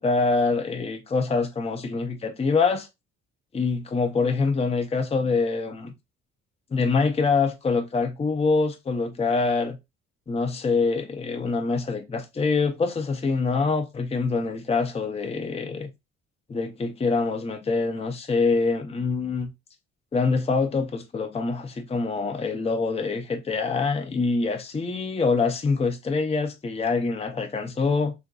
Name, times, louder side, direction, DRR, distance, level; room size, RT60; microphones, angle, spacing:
voice 1, 0.0-2.9 3.5-5.9 6.7-9.8 10.3-15.9 16.5-19.5 20.1-28.1, left 4 dB, 20° left, 0.5 m, -25 dB
3.7 x 2.5 x 2.3 m
cardioid pair, 90°, 30 cm